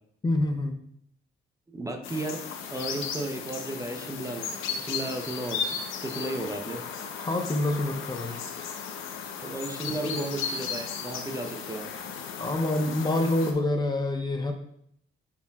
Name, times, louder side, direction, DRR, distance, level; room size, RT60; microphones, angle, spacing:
voice 1, 0.2-0.8 7.3-8.4 10.0-10.2 12.4-14.5, left 2 dB, 20° left, 4 dB, 0.6 m, -27 dB
voice 2, 1.7-6.8 9.4-11.9, right 2 dB, 15° right, 5 dB, 0.8 m, -34 dB
sound 1, 2.0-13.5, left 6 dB, 85° left, 0.8 m, -35 dB
9.1 x 4.6 x 2.4 m, 0.70 s
cardioid pair, 90°, 20 cm